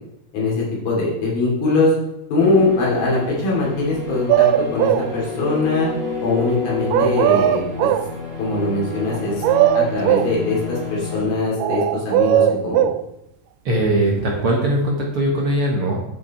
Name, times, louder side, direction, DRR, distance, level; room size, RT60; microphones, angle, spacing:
voice 1, 0.3-1.9 2.3-5.9 6.2-7.9 8.4-12.9, left 3 dB, 75° left, -4 dB, 5.0 m, -21 dB
sound 1, 2.4-11.2, left 3 dB, 25° right, 2.9 m, -30 dB
sound 2, 4.3-5.1 6.9-8.1 9.1-10.3 11.6-13.0, right 11 dB, 85° right, 1.9 m, -18 dB
voice 2, 13.6-16.0, right 1 dB, 55° right, -2 dB, 1.6 m, -20 dB
10.5 x 8.1 x 4.4 m, 0.84 s
omnidirectional pair, 4.3 m